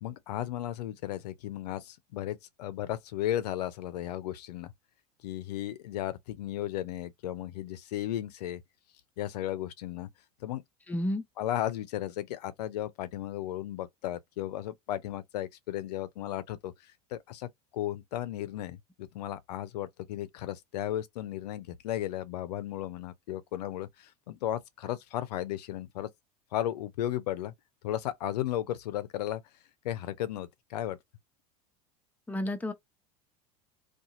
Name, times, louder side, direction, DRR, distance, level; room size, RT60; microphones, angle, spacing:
voice 1, 0.0-4.7 5.2-8.6 9.2-10.1 10.4-10.6 11.4-17.5 17.7-26.1 26.5-27.5 27.8-29.4 29.8-31.0, left 12 dB, 80° left, 0.5 m, -35 dB
voice 2, 10.9-11.2 32.3-32.7, left 1 dB, 10° left, 0.6 m, -31 dB
2.7 x 2.4 x 2.6 m
hypercardioid pair, 90°, 20 cm